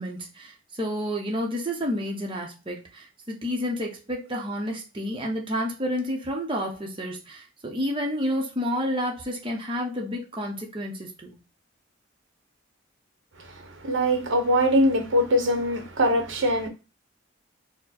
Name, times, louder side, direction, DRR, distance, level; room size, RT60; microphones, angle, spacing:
voice 1, 0.0-11.4, equal, 25° right, 0.7 m, -30 dB
voice 2, 13.4-16.7, equal, 70° right, 0.9 m, -23 dB
4.4 x 2.1 x 4.1 m
head